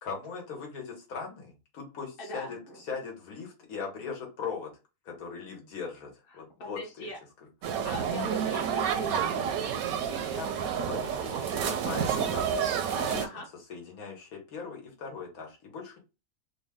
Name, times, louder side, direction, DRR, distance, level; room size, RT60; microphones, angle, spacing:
voice 1, 0.0-4.7 5.0-7.1 7.4-7.5 10.1-10.5 10.8-12.5 12.9-13.2 13.7-16.0, left 5 dB, 85° left, 1 dB, 1.5 m, -39 dB
voice 2, 6.3-7.2 7.8-9.0 13.2-13.4, equal, 45° left, 1 dB, 1.1 m, -40 dB
sound 1, 7.6-13.3, right 7 dB, 80° right, 1.0 m, -29 dB
3.5 x 2.2 x 3.5 m, 0.29 s
omnidirectional pair, 1.5 m